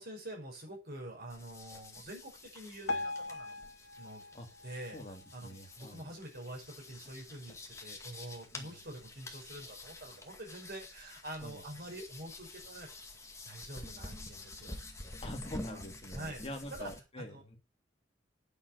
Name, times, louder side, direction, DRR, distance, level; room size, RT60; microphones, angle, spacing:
voice 1, 0.0-3.6 4.0-4.2 4.6-5.0 5.3-7.6 7.8-13.1 13.5-14.8 15.7-15.8 16.1-16.9 17.2-17.6, right 1 dB, 55° right, 0 dB, 5.6 m, -46 dB
sound 1, 1.3-17.0, left 2 dB, 15° left, 2.0 m, -49 dB
Piano, 2.9-6.0 6.5-6.7 7.0-7.1 7.8-7.9 8.4-8.5, left 2 dB, 80° left, 1.1 m, -41 dB
voice 2, 4.9-6.0 8.5-8.8 11.4-11.6 15.2-17.6, left 1 dB, 30° left, 3 dB, 2.6 m, -45 dB
9.5 x 7.1 x 8.1 m, 0.30 s
head